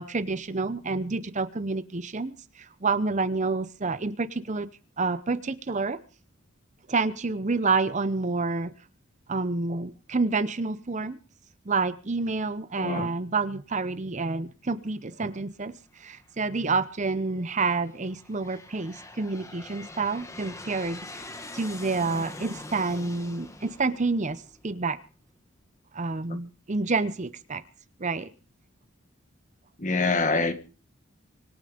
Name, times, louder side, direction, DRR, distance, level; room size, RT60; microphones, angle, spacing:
voice 1, 0.0-4.7 5.0-6.0 6.9-8.7 9.3-11.2 11.7-25.0 25.9-27.6 28.0-28.3, right 3 dB, 35° right, 0.7 m, -28 dB
voice 2, 12.7-13.1 29.8-30.5, left 3 dB, 35° left, 1.7 m, -25 dB
Aircraft, 16.1-16.7 17.4-24.9, left 2 dB, 15° left, 1.7 m, -44 dB
25.0 x 9.0 x 5.1 m
head